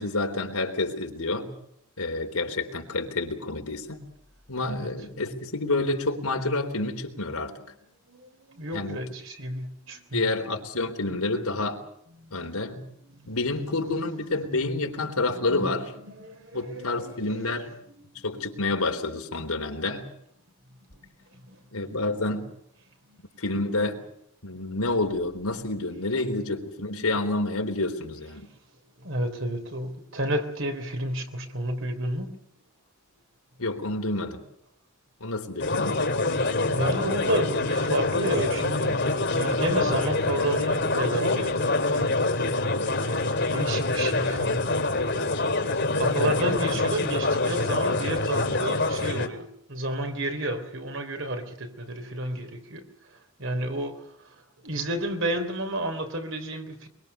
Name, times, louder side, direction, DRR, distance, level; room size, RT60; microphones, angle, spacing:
voice 1, 0.0-1.5 2.0-4.0 4.5-7.5 8.7-9.0 10.1-11.8 12.3-12.8 13.3-15.9 16.5-17.7 18.2-20.0 21.7-22.5 23.4-24.0 24.4-28.5 33.6-34.4 35.2-36.0, left 2 dB, 90° left, 3.9 m, -28 dB
voice 2, 8.1-10.3 12.2-12.6 13.0-13.4 14.7-14.8 15.3-18.3 20.9-21.0 21.3-21.6 23.1-23.2 29.0-32.4 36.4-42.1 42.9-44.6 44.9-54.4 54.6-56.9, right 1 dB, 60° right, 3.5 m, -32 dB
sound 1, 35.6-49.3, left 2 dB, 55° left, 2.8 m, -25 dB
24.0 x 23.5 x 6.9 m
head